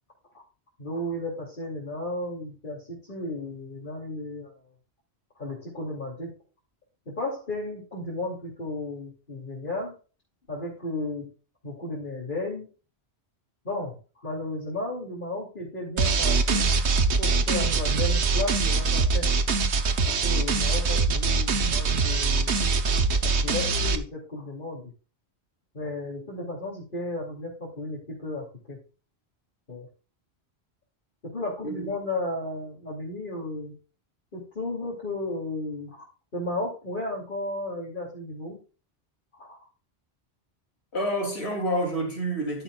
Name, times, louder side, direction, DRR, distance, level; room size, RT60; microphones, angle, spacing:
voice 1, 0.8-4.5 5.4-6.3 7.1-9.9 10.5-11.3 11.6-12.7 13.6-16.7 17.2-19.3 20.1-22.7 23.2-24.9 25.7-28.8 29.7-29.9 31.2-33.7 34.3-36.0 36.3-38.6 39.4-39.6, left 2 dB, 50° left, 3.1 m, -34 dB
sound 1, 16.0-24.0, right 4 dB, 90° right, 1.3 m, -23 dB
voice 2, 40.9-42.6, right 1 dB, 75° left, 3.4 m, -28 dB
14.0 x 6.8 x 2.4 m
omnidirectional pair, 1.1 m